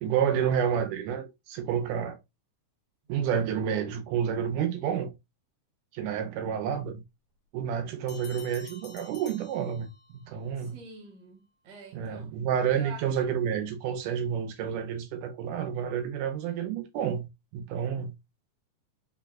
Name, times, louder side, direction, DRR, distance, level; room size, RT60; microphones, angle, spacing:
voice 1, 0.0-2.2 3.1-5.2 5.9-7.0 7.5-10.8 11.9-18.1, right 8 dB, 85° right, 2.3 m, -30 dB
Bell, 8.1-10.3, left 4 dB, 55° left, 1.8 m, -50 dB
voice 2, 10.6-12.4 12.7-13.1, right 4 dB, 50° right, 1.6 m, -46 dB
5.3 x 4.0 x 2.4 m
omnidirectional pair, 3.6 m